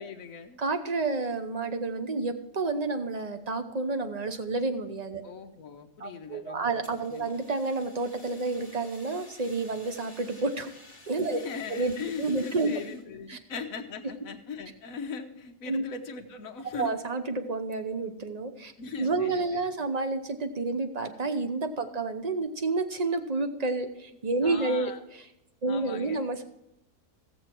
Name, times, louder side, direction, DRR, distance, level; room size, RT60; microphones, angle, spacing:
voice 1, 0.0-0.6 5.2-6.8 7.1-7.3 11.3-17.0 18.8-19.6 24.4-25.0 25.7-26.2, left 5 dB, 55° left, 4 dB, 1.4 m, -40 dB
voice 2, 0.6-5.2 6.0-10.7 11.1-11.4 11.7-11.9 12.2-12.8 13.3-13.4 15.7-15.8 16.7-18.7 19.0-25.2 25.6-26.4, right 3 dB, 35° right, 7 dB, 0.6 m, -30 dB
Fire, 6.8-13.0, left 1 dB, 15° left, 2.3 m, -52 dB
16.5 x 7.3 x 4.5 m, 0.87 s
omnidirectional pair, 1.8 m